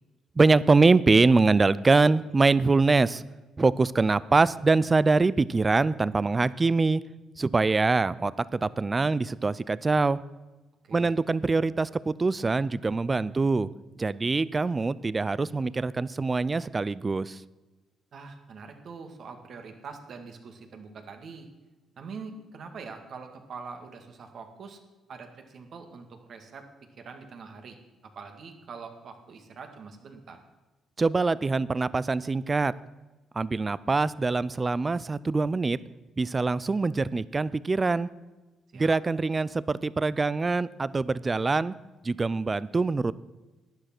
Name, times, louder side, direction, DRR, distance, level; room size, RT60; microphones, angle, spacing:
voice 1, 0.4-3.2 3.6-7.0 7.4-10.2 10.9-13.7 14.0-17.4 31.0-32.7 33.3-35.8 36.2-38.1 38.7-41.7 42.0-43.1, right 3 dB, 25° right, 19 dB, 0.4 m, -24 dB
voice 2, 10.8-11.1 18.1-21.5 22.0-24.8 25.1-26.7 27.0-27.8 28.0-30.4 38.7-38.9, right 5 dB, 60° right, 5 dB, 1.9 m, -44 dB
11.5 x 10.0 x 6.0 m, 1.1 s
cardioid pair, 90°, 0 cm